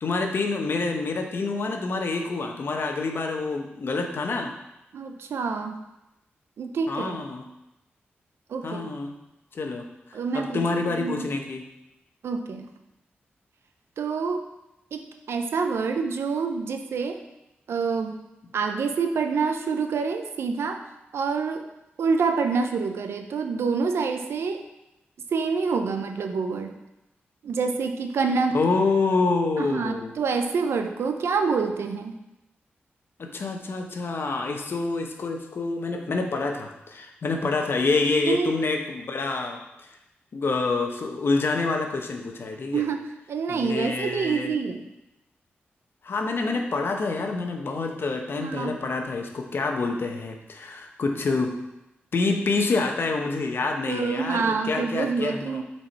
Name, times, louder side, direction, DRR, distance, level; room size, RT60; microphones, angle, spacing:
voice 1, 0.0-4.5 6.9-7.4 8.6-9.1 9.5-11.6 28.5-30.1 33.2-39.9 40.3-42.8 43.5-44.5 46.0-51.5 52.1-55.6, left 3 dB, 65° left, 3 dB, 1.0 m, -27 dB
voice 2, 4.9-5.8 6.6-7.2 8.5-8.9 10.1-11.3 12.2-12.7 14.0-14.5 14.9-17.2 17.7-18.1 18.5-20.8 21.1-21.7 22.0-24.6 25.3-26.7 27.4-28.6 29.6-32.1 38.2-38.6 42.7-44.9 48.4-48.8 53.9-55.6, right 5 dB, 90° right, 6 dB, 0.7 m, -27 dB
7.4 x 4.5 x 4.5 m, 0.92 s
cardioid pair, 70°, 4 cm